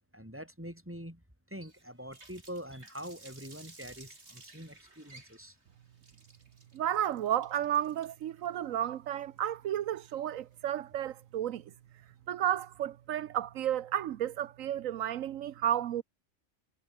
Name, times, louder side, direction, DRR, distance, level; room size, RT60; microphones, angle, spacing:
voice 1, 0.1-1.2 1.5-5.5, equal, 10° right, 8.0 m, -44 dB
Water tap faucet, 1.6-10.5, right 2 dB, 55° right, 4.5 m, -56 dB
voice 2, 6.7-11.6 12.3-16.0, right 11 dB, 85° right, 1.1 m, -32 dB
omnidirectional pair, 1.4 m